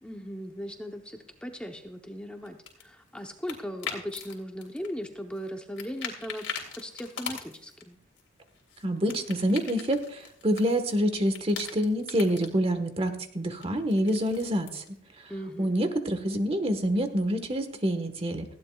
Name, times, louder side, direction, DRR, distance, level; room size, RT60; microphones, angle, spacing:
voice 1, 0.0-6.5 6.7-8.0 15.3-15.8, equal, 5° left, 3 dB, 0.8 m, -38 dB
sound 1, 2.4-4.3 4.6-5.5 5.8-7.8 8.2-11.0 11.2-12.5 13.6-14.9, left 7 dB, 80° left, 3.2 m, -40 dB
voice 2, 8.8-14.8 15.6-18.4, equal, 30° right, 8 dB, 1.3 m, -27 dB
19.0 x 15.5 x 2.4 m, 0.65 s
head